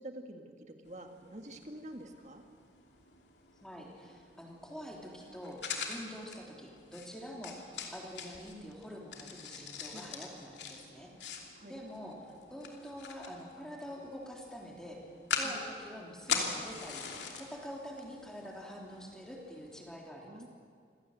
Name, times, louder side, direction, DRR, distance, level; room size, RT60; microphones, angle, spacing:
voice 1, 0.0-2.4 9.9-10.1 11.6-11.7 15.4-15.5 20.3-20.5, right 1 dB, 40° right, 5 dB, 1.9 m, -47 dB
sound 1, 0.8-19.9, left 5 dB, 85° left, 3.0 m, -43 dB
voice 2, 3.6-11.1 11.6-15.0 15.3-17.0 17.4-20.5, equal, 5° left, -1 dB, 3.4 m, -46 dB
26.5 x 17.0 x 8.0 m, 2.2 s
head